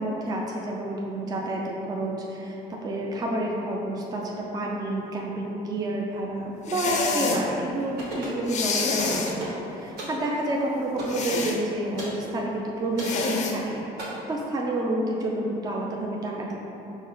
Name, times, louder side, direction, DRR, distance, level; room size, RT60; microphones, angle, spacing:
voice 1, 0.0-16.6, right 1 dB, 25° right, -2 dB, 0.4 m, -29 dB
sound 1, 6.7-7.4 8.5-9.3 11.1-11.6 13.0-13.5, left 4 dB, 45° left, 0.4 m, -27 dB
sound 2, 8.0-8.4 9.0-9.6 10.0-10.2 11.0-11.2 12.0-12.2 13.0-13.2 14.0-14.1, right 1 dB, 75° right, 1.1 m, -35 dB
4.7 x 2.1 x 3.7 m, 3.0 s
cardioid pair, 110°, 17 cm